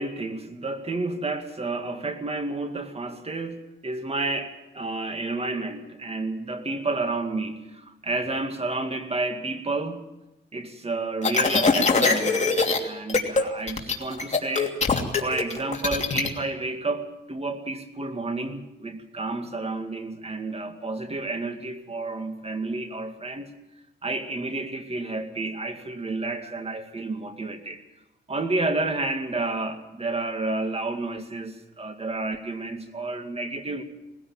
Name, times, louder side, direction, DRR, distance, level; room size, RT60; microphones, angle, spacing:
voice 1, 0.0-10.0 10.5-14.8 15.2-23.5 24.0-27.8 28.3-33.8, right 2 dB, 30° right, 7 dB, 2.3 m, -30 dB
sound 1, 11.2-12.8 13.1-13.4 13.7-16.3, left 4 dB, 35° left, 2.9 m, -22 dB
20.0 x 16.0 x 8.9 m, 0.98 s
cardioid pair, 80°, 19 cm